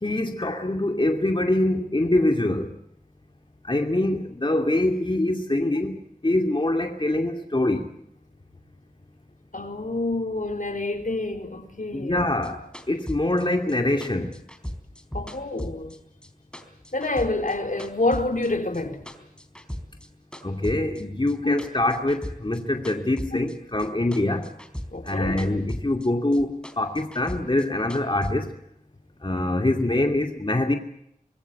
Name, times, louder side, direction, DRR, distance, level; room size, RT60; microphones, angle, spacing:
voice 1, 0.0-2.7 3.7-6.0 6.2-7.8 11.9-12.6 12.9-14.3 20.4-24.4 25.0-28.5 29.2-30.8, left 1 dB, 35° left, 2.5 m, -24 dB
voice 2, 9.5-12.2 15.1-16.0 16.9-19.0 21.4-21.5 24.9-25.4, left 2 dB, 70° left, 4.1 m, -27 dB
sound 1, 12.2-16.3 16.5-18.5 18.7-20.1 20.3-23.9 24.1-26.1 26.3-28.3, equal, 5° left, 3.9 m, -37 dB
26.0 x 21.5 x 8.4 m
wide cardioid pair, 45°, 15 cm